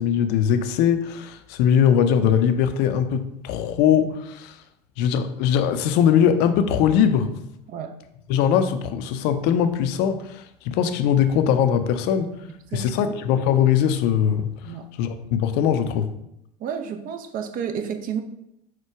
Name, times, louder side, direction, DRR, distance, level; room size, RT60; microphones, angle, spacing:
voice 1, 0.0-4.6 5.0-7.3 8.3-12.4 12.7-14.5 15.0-16.1, left 8 dB, 55° left, 9 dB, 0.5 m, -21 dB
voice 2, 12.7-13.1 14.6-14.9 16.6-18.2, right 7 dB, 45° right, 7 dB, 0.6 m, -31 dB
4.4 x 2.2 x 4.6 m, 0.79 s
hypercardioid pair, 85°, 21 cm